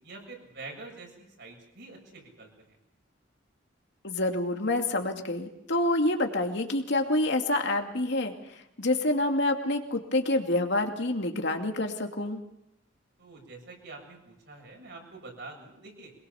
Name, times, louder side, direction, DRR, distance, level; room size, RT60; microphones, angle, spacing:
voice 1, 0.0-2.8 13.2-16.1, right 3 dB, 65° right, 1 dB, 7.4 m, -46 dB
voice 2, 4.0-12.4, left 2 dB, 65° left, 4 dB, 2.4 m, -27 dB
23.5 x 21.5 x 7.1 m, 0.82 s
head